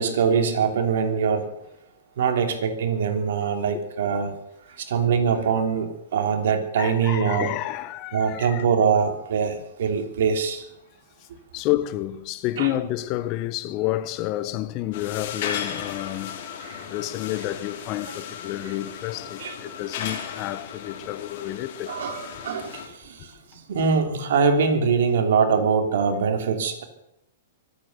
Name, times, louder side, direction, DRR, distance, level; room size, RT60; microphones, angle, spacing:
voice 1, 0.0-1.5 2.2-4.3 4.8-7.5 8.1-10.7 12.6-12.7 16.6-16.8 19.4-19.6 21.9-26.8, right 6 dB, 70° right, 3.0 m, -23 dB
voice 2, 6.7-8.7 11.5-16.5 16.9-21.9, left 15 dB, 40° left, 1.1 m, -29 dB
sound 1, 14.9-22.9, left 8 dB, 55° left, 3.7 m, -36 dB
24.0 x 8.7 x 6.8 m
hypercardioid pair, 125°, 0 cm